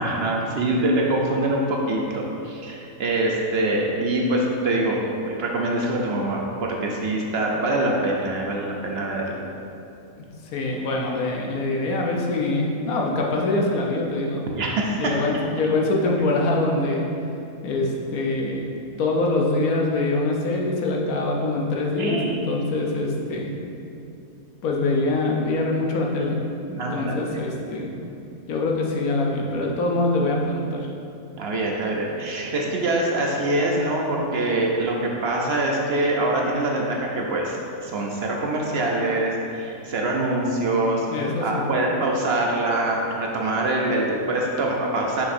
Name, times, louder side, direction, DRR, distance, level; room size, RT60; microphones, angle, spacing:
voice 1, 0.0-9.4 14.5-15.0 15.3-15.4 22.0-22.5 26.8-27.4 31.4-45.2, right 1 dB, 60° right, -1 dB, 0.7 m, -24 dB
voice 2, 10.5-14.4 14.9-17.0 17.6-18.6 19.0-23.5 24.6-26.4 26.7-27.9 28.5-30.9 41.1-41.7, left 2 dB, 85° left, -1 dB, 1.3 m, -24 dB
6.1 x 5.9 x 2.6 m, 2.7 s
omnidirectional pair, 1.5 m